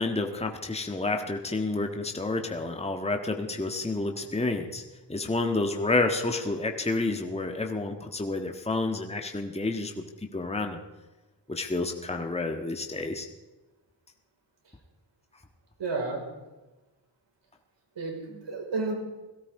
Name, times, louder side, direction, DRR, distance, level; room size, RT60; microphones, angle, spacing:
voice 1, 0.0-4.8 5.1-10.0 10.3-10.8 11.5-13.3, left 2 dB, 15° left, 3 dB, 1.6 m, -29 dB
voice 2, 15.8-16.2 18.0-19.0, right 3 dB, 75° right, 1 dB, 5.3 m, -31 dB
17.5 x 16.5 x 4.9 m, 1.1 s
cardioid pair, 75°, 43 cm